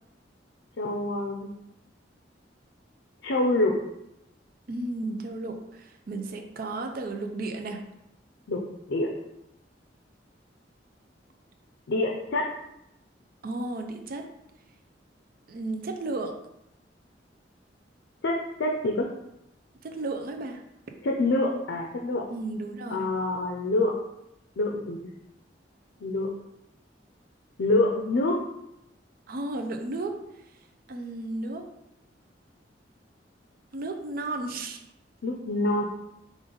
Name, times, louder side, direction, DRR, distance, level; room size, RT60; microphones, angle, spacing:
voice 1, 0.8-1.5 3.2-3.8 8.5-8.6 8.9-9.1 11.9-12.5 18.2-19.1 21.0-22.3 22.9-23.9 24.6-25.1 26.0-26.3 27.6-28.4 35.2-35.8, left 2 dB, 85° left, 1 dB, 0.5 m, -26 dB
voice 2, 4.7-7.8 13.4-14.2 15.5-16.3 19.8-20.6 22.3-23.1 29.3-30.1 30.9-31.6 33.7-34.8, right 2 dB, 55° right, 5 dB, 0.5 m, -33 dB
5.0 x 2.5 x 3.8 m, 0.85 s
head